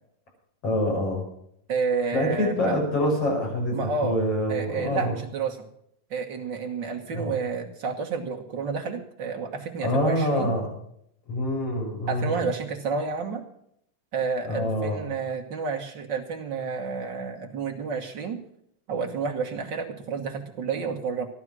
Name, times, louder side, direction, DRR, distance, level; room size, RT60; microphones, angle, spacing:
voice 1, 0.6-1.2 2.1-3.8 4.0-5.1 7.1-7.3 9.8-10.7 11.3-12.4 14.4-15.0, left 1 dB, 45° left, -1 dB, 6.4 m, -26 dB
voice 2, 1.7-2.7 3.7-4.2 4.5-5.7 6.1-10.5 12.1-13.4 14.1-18.4 18.9-21.3, right 5 dB, 60° right, 2 dB, 1.2 m, -30 dB
14.5 x 11.5 x 6.1 m, 0.72 s
omnidirectional pair, 3.8 m